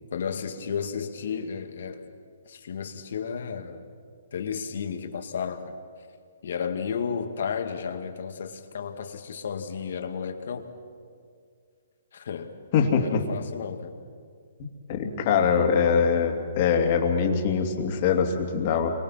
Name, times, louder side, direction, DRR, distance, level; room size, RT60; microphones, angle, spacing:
voice 1, 0.1-2.1 2.4-3.8 4.3-5.7 6.4-10.7 12.1-12.5 13.0-13.9, left 6 dB, 65° left, 6 dB, 2.2 m, -33 dB
voice 2, 12.7-13.2 14.6-18.9, left 6 dB, 40° left, 3 dB, 2.9 m, -23 dB
29.0 x 24.5 x 5.9 m, 2.1 s
hypercardioid pair, 155°, 0 cm